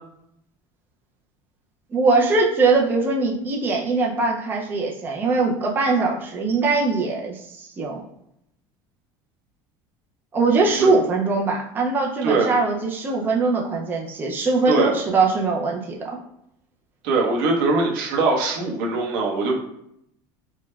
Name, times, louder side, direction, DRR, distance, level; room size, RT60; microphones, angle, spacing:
voice 1, 1.9-8.0 10.3-16.2, right 3 dB, 20° right, -1 dB, 0.4 m, -21 dB
voice 2, 17.0-19.5, right 3 dB, 85° right, -1 dB, 0.9 m, -21 dB
4.6 x 2.1 x 2.3 m, 0.76 s
cardioid pair, 155°, 11 cm